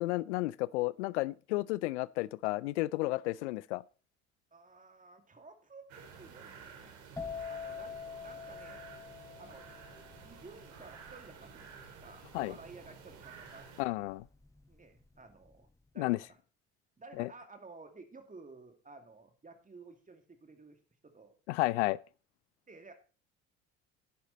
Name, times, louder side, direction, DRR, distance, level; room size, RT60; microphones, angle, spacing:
voice 1, 0.0-3.8 12.3-12.5 13.8-14.2 16.0-16.2 17.2-17.3 21.5-22.0, left 20 dB, 80° left, 0.5 m, -32 dB
voice 2, 4.5-7.0 7.5-9.7 10.2-13.9 14.7-15.7 15.9-16.4 17.0-21.4 22.7-22.9, right 3 dB, 25° right, 2.5 m, -54 dB
Lagoon evening wind in trees crows, 5.9-13.8, right 6 dB, 75° right, 2.5 m, -52 dB
sound 1, 7.2-14.7 15.0-15.5, left 6 dB, 10° left, 1.6 m, -45 dB
10.5 x 10.5 x 4.1 m
hypercardioid pair, 60°, 34 cm